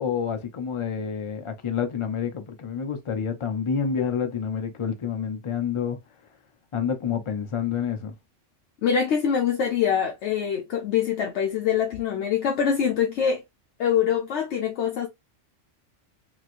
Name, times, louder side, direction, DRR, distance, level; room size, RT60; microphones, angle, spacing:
voice 1, 0.0-6.0 6.7-8.1, left 7 dB, 45° left, 0.4 m, -28 dB
voice 2, 8.8-13.4 13.8-15.1, left 8 dB, 70° left, 0.9 m, -24 dB
3.1 x 2.9 x 2.4 m
omnidirectional pair, 1.3 m